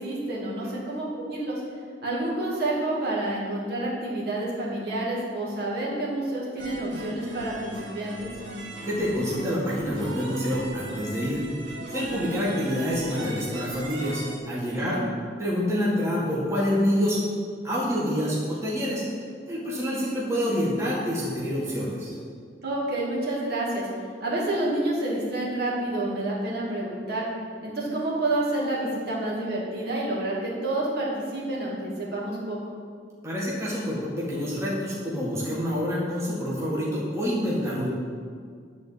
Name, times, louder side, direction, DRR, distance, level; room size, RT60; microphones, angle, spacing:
voice 1, 0.0-1.6 2.0-8.3 14.7-15.0 22.6-23.9 24.2-27.3 27.6-32.6, right 1 dB, 60° right, -5 dB, 2.2 m, -29 dB
sound 1, 6.6-14.4, right 2 dB, 90° right, 1.5 m, -37 dB
voice 2, 8.8-11.4 11.9-15.0 15.4-17.2 17.6-19.0 19.5-22.2 33.2-37.9, equal, 15° right, -7 dB, 1.7 m, -27 dB
10.5 x 4.1 x 7.3 m, 2.1 s
head